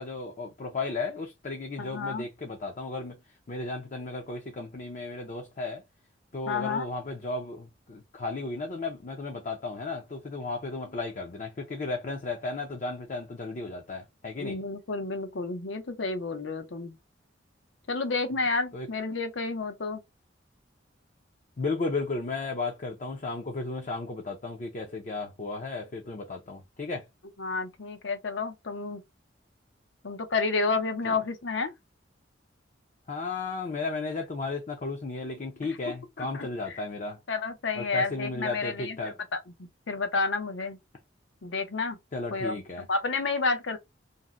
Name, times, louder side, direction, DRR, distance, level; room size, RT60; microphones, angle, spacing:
voice 1, 0.0-3.2 3.5-5.8 6.3-14.6 18.7-18.9 21.6-27.1 31.1-31.2 33.1-37.2 37.8-39.2 42.1-42.8, left 3 dB, 40° left, 0.5 m, -34 dB
voice 2, 1.8-2.2 6.5-6.9 14.4-16.9 17.9-20.0 27.4-29.0 30.0-31.7 36.2-36.8 37.3-40.8 41.4-42.0 42.3-43.8, left 3 dB, 80° left, 0.7 m, -30 dB
2.7 x 2.1 x 3.5 m
head